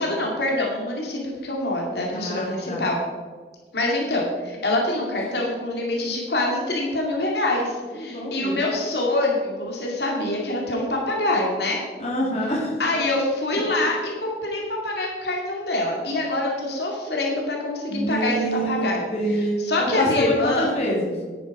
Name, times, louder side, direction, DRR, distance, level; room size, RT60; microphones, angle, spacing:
voice 1, 0.0-3.0 3.7-11.8 12.8-20.7, left 2 dB, 70° left, -1 dB, 2.4 m, -25 dB
voice 2, 2.1-2.8 7.9-8.6 12.0-12.7 17.9-21.1, equal, 35° left, -3 dB, 2.8 m, -26 dB
11.0 x 9.5 x 4.8 m, 1.5 s
head